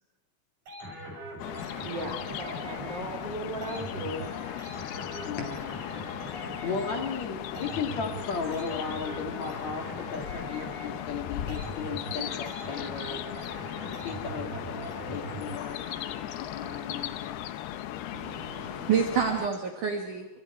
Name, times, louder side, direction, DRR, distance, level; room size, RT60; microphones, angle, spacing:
sound 1, 0.7-16.4, right 2 dB, 35° right, 7.4 m, -42 dB
sound 2, 1.4-19.5, left 12 dB, 80° left, 2.2 m, -37 dB
voice 1, 1.8-4.3 11.5-11.6 15.3-15.4, right 1 dB, 80° right, 1 dB, 1.0 m, -37 dB
voice 2, 5.2-5.8 6.6-13.2 13.8-17.5, left 5 dB, 55° left, 3 dB, 2.1 m, -36 dB
voice 3, 18.1-20.3, right 7 dB, 55° right, 3 dB, 2.4 m, -28 dB
30.0 x 25.5 x 4.8 m, 1.1 s
omnidirectional pair, 5.8 m